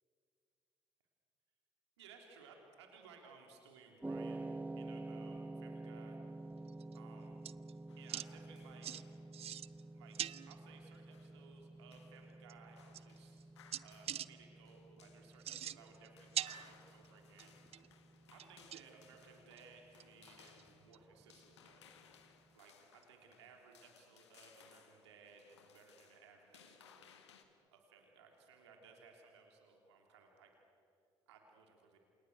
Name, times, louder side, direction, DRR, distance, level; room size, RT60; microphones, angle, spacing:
voice 1, 2.0-6.2 6.9-7.5 8.0-8.9 9.9-13.4 13.8-17.6 17.8-18.0 18.3-21.9 22.5-27.1 27.7-30.6 31.3-32.0, right 5 dB, 80° right, 2 dB, 3.4 m, -61 dB
carillon low bell, 4.0-22.3, right 2 dB, 10° right, 0.9 m, -50 dB
sound 1, 6.7-7.0 7.4-7.7 8.1-8.3 8.8-9.0 9.3-9.8 10.1-10.6 11.9-12.0 12.5-12.6 12.9-13.4 13.7-14.3 15.3-16.1 16.3-17.1 17.4-17.9 18.4-19.0 19.6-19.7 20.0-20.1 20.5-20.6 20.9-21.0 23.0-23.1, right 10 dB, 45° right, 0.6 m, -42 dB
sound 2, 7.9-27.4, left 8 dB, 80° left, 1.6 m, -66 dB
28.5 x 27.5 x 6.3 m, 2.5 s
figure-of-eight pair, 50°, 14 cm